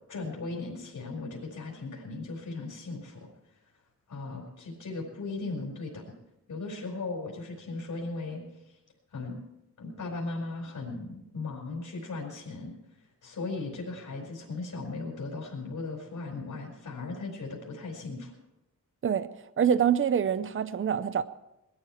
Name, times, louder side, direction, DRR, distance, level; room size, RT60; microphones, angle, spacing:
voice 1, 0.1-3.3 4.1-6.0 6.5-8.8 9.1-9.4 9.8-12.7 13.2-18.4, left 3 dB, 65° left, 4.6 m, -37 dB
voice 2, 19.6-21.2, right 8 dB, 40° right, 0.6 m, -25 dB
20.5 x 12.5 x 4.5 m
wide cardioid pair, 130°, 33 cm